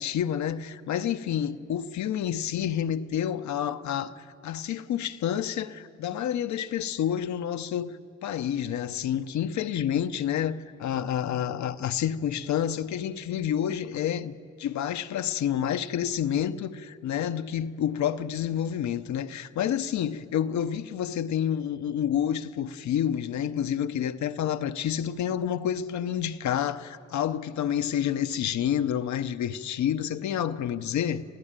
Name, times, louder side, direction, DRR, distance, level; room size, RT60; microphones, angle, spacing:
voice 1, 0.0-7.9 8.2-14.3 14.6-31.2, left 9 dB, 70° left, 0.9 m, -29 dB
28.0 x 15.5 x 9.0 m
cardioid pair, 90°, 30 cm